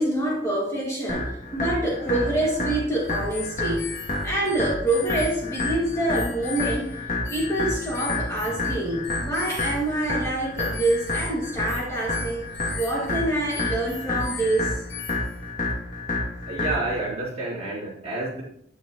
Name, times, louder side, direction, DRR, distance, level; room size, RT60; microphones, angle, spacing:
voice 1, 0.0-3.9 4.2-7.0 7.3-12.4 12.7-14.8, right 1 dB, 15° left, -4 dB, 2.2 m, -26 dB
sound 1, 1.1-17.1, left 2 dB, 50° left, 2.6 m, -30 dB
sound 2, 3.0-15.5, left 7 dB, 85° left, 1.1 m, -40 dB
voice 2, 16.5-18.4, right 2 dB, 35° right, -7 dB, 4.4 m, -29 dB
10.0 x 9.9 x 3.1 m, 0.70 s
head